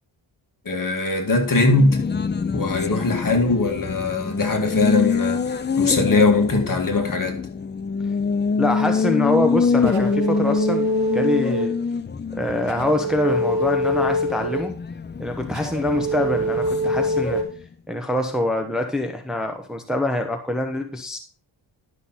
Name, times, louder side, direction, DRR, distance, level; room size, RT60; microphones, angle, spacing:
voice 1, 0.7-2.0 2.5-7.4, left 3 dB, 40° left, 2.1 m, -20 dB
Race car auto racing, 1.4-17.6, left 5 dB, 25° left, 0.4 m, -26 dB
voice 2, 8.6-11.7 12.3-14.7 15.2-17.4 17.9-21.2, left 1 dB, ahead, 1.0 m, -25 dB
sound 1, 9.8-11.8 12.7-14.7 15.5-17.4, right 1 dB, 50° right, 3.1 m, -24 dB
11.0 x 6.1 x 4.1 m
wide cardioid pair, 95°, 48 cm